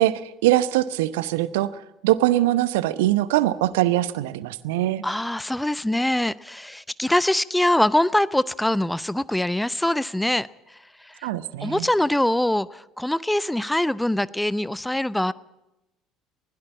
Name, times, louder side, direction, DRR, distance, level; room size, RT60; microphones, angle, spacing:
voice 1, 0.0-1.7 2.0-5.0 11.2-11.9, right 15 dB, 65° right, 0.8 m, -22 dB
voice 2, 5.0-11.3 11.6-15.3, left 1 dB, 5° left, 0.7 m, -23 dB
20.0 x 16.5 x 8.4 m
figure-of-eight pair, 60°, 0 cm